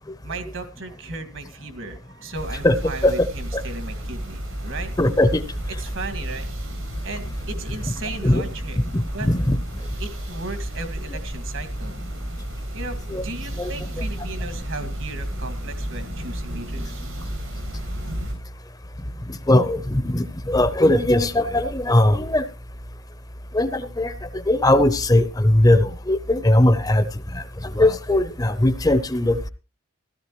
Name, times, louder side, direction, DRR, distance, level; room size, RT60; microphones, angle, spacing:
voice 1, 0.2-4.9 5.8-6.5 7.0-8.8 9.1-9.3 10.0-12.0 12.7-17.0, right 3 dB, 65° right, 7 dB, 2.0 m, -35 dB
sound 1, 2.3-18.3, equal, 90° right, 6.3 m, -32 dB
voice 2, 5.0-5.4 8.2-8.4 8.9-9.6 13.1-13.2 13.6-13.7 19.5-22.4 23.5-24.1 24.5-27.0 27.3-27.4 27.7-29.5, left 1 dB, 20° left, 12 dB, 0.7 m, -19 dB
16.0 x 13.0 x 3.0 m, 0.32 s
head